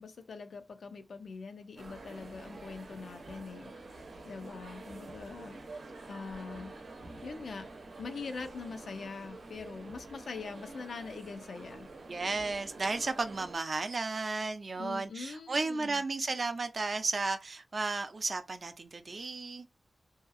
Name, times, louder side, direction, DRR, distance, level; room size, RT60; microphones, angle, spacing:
voice 1, 0.0-5.6 6.1-6.7 7.2-7.7 8.0-11.9 14.8-16.0, left 4 dB, 80° left, 0.4 m, -43 dB
sound 1, 1.8-13.6, right 2 dB, 85° right, 0.7 m, -48 dB
voice 2, 12.1-19.7, right 3 dB, 45° right, 0.4 m, -34 dB
2.7 x 2.3 x 2.5 m
wide cardioid pair, 145°, 0 cm